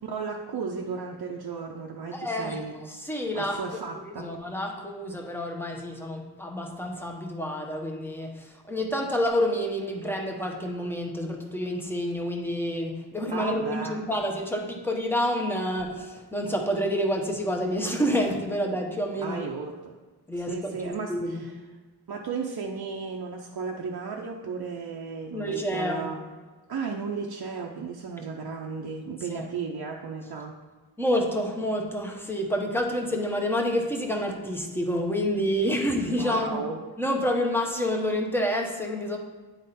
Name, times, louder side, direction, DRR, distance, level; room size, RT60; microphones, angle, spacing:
voice 1, 0.0-2.9 3.3-4.3 13.3-14.0 19.2-19.9 20.4-21.5 22.1-26.2 26.7-30.6 36.1-36.8, right 5 dB, 65° right, 0 dB, 0.7 m, -35 dB
voice 2, 2.1-3.6 4.0-19.4 20.3-21.4 25.3-26.1 29.3-29.5 31.0-36.6 37.0-39.2, equal, 5° left, 1 dB, 1.1 m, -28 dB
9.7 x 3.7 x 4.2 m, 1.3 s
wide cardioid pair, 65°, 40 cm